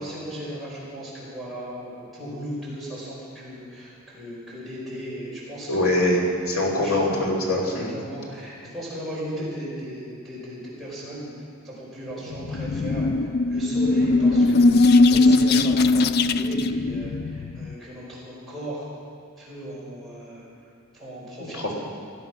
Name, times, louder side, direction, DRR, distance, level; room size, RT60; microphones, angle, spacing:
voice 1, 0.0-5.8 6.6-7.1 7.6-18.9 19.4-20.4 20.9-21.7, equal, ahead, -8 dB, 5.2 m, -37 dB
voice 2, 5.7-7.9 21.4-21.7, left 1 dB, 85° left, -2 dB, 2.8 m, -23 dB
sound 1, 12.3-17.7, left 3 dB, 45° left, 0.3 m, -19 dB
17.5 x 12.0 x 5.9 m, 2.3 s
head